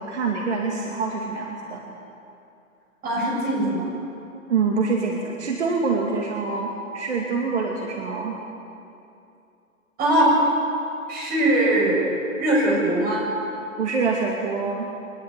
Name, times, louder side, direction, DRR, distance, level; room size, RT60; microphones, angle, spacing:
voice 1, 0.0-2.0 4.5-8.4 13.8-14.9, right 4 dB, 55° right, 0 dB, 2.5 m, -25 dB
voice 2, 3.0-3.9 10.0-10.4 11.1-12.0 12.4-13.3, right 1 dB, 20° right, -3 dB, 7.4 m, -21 dB
23.5 x 19.5 x 8.1 m, 2.7 s
figure-of-eight pair, 115°, 41 cm